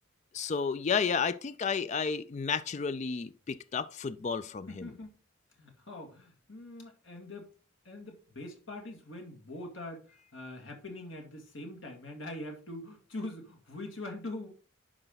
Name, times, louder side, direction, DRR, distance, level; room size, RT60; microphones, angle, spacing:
voice 1, 0.3-4.9, left 5 dB, 35° left, 0.3 m, -32 dB
voice 2, 4.7-5.1 5.6-7.5 7.8-10.0 10.3-14.5, left 1 dB, 75° left, 2.3 m, -43 dB
11.0 x 4.9 x 3.9 m
head